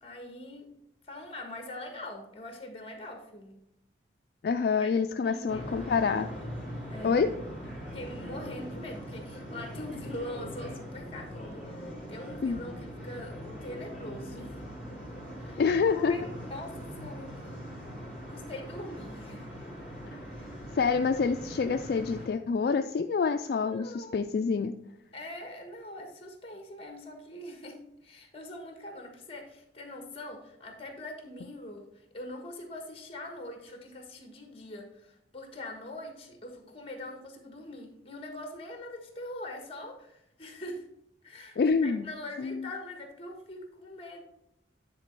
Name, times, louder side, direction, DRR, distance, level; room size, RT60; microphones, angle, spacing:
voice 1, 0.0-0.7 1.0-3.6 4.8-4.9 5.2-5.7 6.9-7.2 7.9-13.3 13.6-14.7 15.3-17.6 18.3-19.5 23.6-24.2 25.1-31.9 32.1-40.8 41.2-41.6 41.8-44.2, left 1 dB, 30° left, 3 dB, 1.4 m, -43 dB
voice 2, 4.4-6.3 7.0-7.3 12.4-12.6 15.6-16.2 20.1-20.2 20.8-24.8 41.6-42.1 42.4-42.7, left 5 dB, 55° left, 7 dB, 0.3 m, -27 dB
sound 1, 5.5-22.3, equal, 5° right, 3.1 m, -41 dB
9.7 x 4.1 x 4.5 m, 0.82 s
head